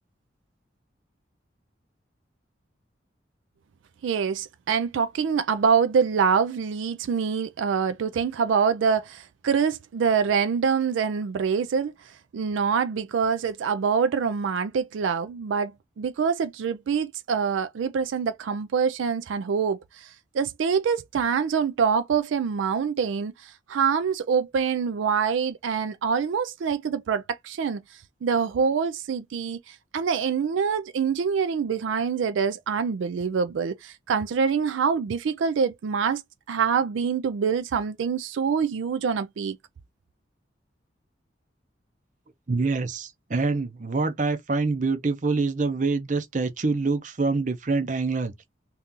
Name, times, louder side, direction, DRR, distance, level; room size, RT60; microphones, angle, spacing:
voice 1, 4.0-27.8 28.2-36.2 36.5-39.6, right 6 dB, 90° right, 0.4 m, -25 dB
voice 2, 42.5-48.3, right 3 dB, 40° right, 0.6 m, -25 dB
2.8 x 2.4 x 3.7 m
head